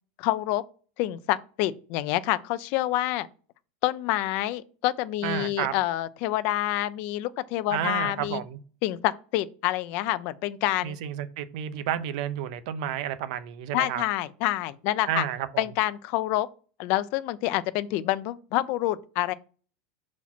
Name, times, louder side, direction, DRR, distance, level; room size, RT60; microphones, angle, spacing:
voice 1, 0.2-0.6 1.0-3.3 3.8-8.4 8.8-11.0 13.7-15.2 15.6-16.5 16.8-19.3, left 15 dB, 40° left, 0.4 m, -27 dB
voice 2, 5.2-5.7 7.7-8.6 10.8-14.0 15.1-15.6, right 10 dB, 55° right, 0.6 m, -31 dB
6.0 x 4.2 x 4.3 m
supercardioid pair, 180°, 5 cm